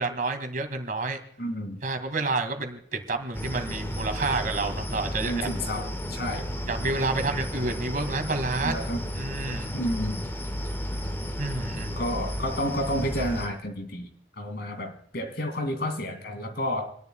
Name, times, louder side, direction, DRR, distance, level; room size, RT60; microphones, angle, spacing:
voice 1, 0.0-1.2 1.8-5.5 6.7-8.9 9.2-9.7 11.4-12.0, right 3 dB, 50° right, 2.2 m, -29 dB
voice 2, 1.4-1.8 5.3-6.5 8.6-9.0 9.7-10.2 11.9-14.1 14.4-17.0, equal, 60° left, 2.6 m, -30 dB
sound 1, 3.3-13.5, equal, 15° left, 1.7 m, -33 dB
29.0 x 11.0 x 2.3 m
head